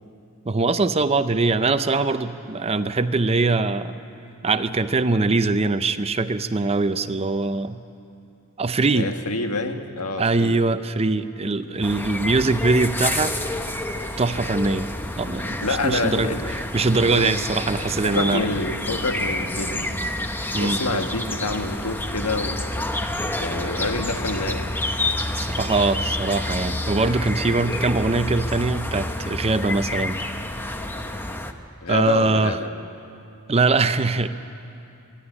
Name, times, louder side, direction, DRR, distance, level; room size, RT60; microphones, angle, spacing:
voice 1, 0.5-4.0 4.4-7.8 8.6-9.1 10.2-13.3 14.2-18.5 20.5-20.8 25.3-30.2 31.9-32.6 33.5-34.3, right 3 dB, 25° right, 11 dB, 0.6 m, -22 dB
voice 2, 8.9-10.5 15.6-16.4 17.1-17.3 18.0-19.9 20.5-22.6 23.4-24.7 31.8-32.7, left 3 dB, 85° left, 6 dB, 1.5 m, -27 dB
sound 1, 11.8-31.5, left 1 dB, 10° left, 0.8 m, -28 dB
25.5 x 11.5 x 10.0 m, 2.6 s
head